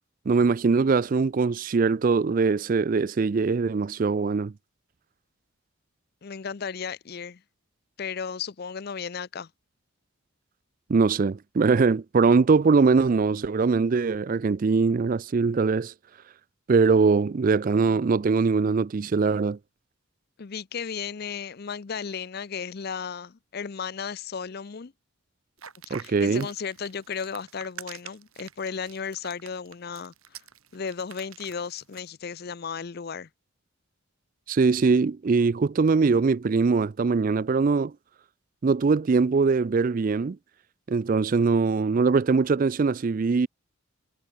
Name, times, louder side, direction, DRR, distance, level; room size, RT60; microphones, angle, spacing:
voice 1, 0.3-4.5 10.9-15.9 16.7-19.6 25.9-26.5 34.5-37.9 38.6-40.4 40.9-43.5, right 4 dB, 40° right, 0.4 m, -22 dB
voice 2, 6.2-7.4 8.0-9.5 20.4-24.9 25.9-30.4 30.7-33.3, left 6 dB, 45° left, 0.5 m, -35 dB
sound 1, 25.6-32.1, right 8 dB, 85° right, 7.3 m, -46 dB
head